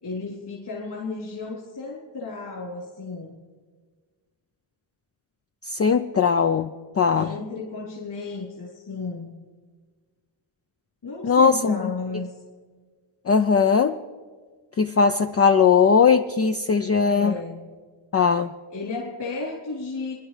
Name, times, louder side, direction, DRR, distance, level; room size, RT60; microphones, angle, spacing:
voice 1, 0.0-3.3 7.2-9.3 11.0-12.3 17.0-17.6 18.7-20.1, left 3 dB, 55° left, -5 dB, 3.7 m, -33 dB
voice 2, 5.6-6.7 7.0-7.4 11.2-11.8 13.3-14.0 14.8-17.4 18.1-18.5, left 6 dB, 30° left, 7 dB, 0.4 m, -19 dB
27.0 x 11.0 x 3.3 m, 1.5 s
cardioid pair, 95°, 49 cm